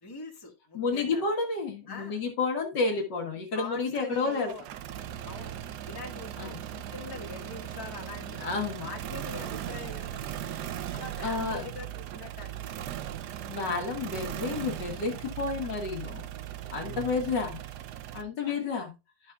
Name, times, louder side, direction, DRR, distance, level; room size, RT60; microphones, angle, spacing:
voice 1, 0.0-1.2 1.9-2.2 2.9-3.0 3.5-4.6 5.2-5.6 5.9-8.4 8.8-10.4 10.8-12.9 16.7-17.0 18.4-18.6, left 4 dB, 10° left, 0 dB, 1.6 m, -43 dB
voice 2, 0.7-4.5 6.4-6.6 8.4-8.9 11.2-11.6 13.5-16.3 16.7-17.6 18.1-18.9, left 4 dB, 65° left, 3 dB, 2.2 m, -30 dB
sound 1, 3.9-18.2, right 11 dB, 65° right, 1.1 m, -38 dB
12.5 x 6.0 x 2.4 m, 0.26 s
omnidirectional pair, 2.1 m